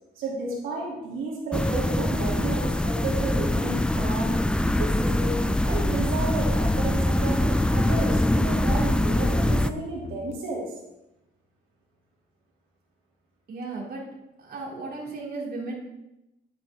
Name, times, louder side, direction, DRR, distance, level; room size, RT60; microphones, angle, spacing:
voice 1, 0.1-4.4 4.7-10.7, right 3 dB, 85° right, -4 dB, 3.0 m, -32 dB
sound 1, 1.5-9.7, left 1 dB, 5° left, 0.4 m, -23 dB
sound 2, 3.0-10.3, left 3 dB, 35° left, 1.7 m, -42 dB
voice 2, 13.5-14.0 14.4-15.7, right 3 dB, 50° right, -3 dB, 3.0 m, -35 dB
10.5 x 8.4 x 3.6 m, 0.92 s
cardioid pair, 90°, 20 cm